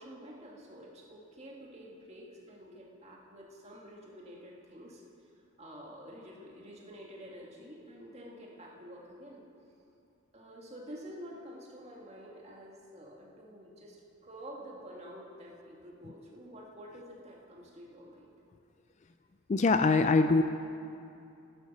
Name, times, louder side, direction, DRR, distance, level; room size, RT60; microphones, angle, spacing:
voice 1, 0.0-5.3 5.6-9.4 10.3-18.3, equal, 30° right, -2 dB, 1.8 m, -49 dB
voice 2, 19.5-20.4, left 3 dB, 35° left, 9 dB, 0.3 m, -23 dB
12.5 x 11.5 x 5.3 m, 2.7 s
head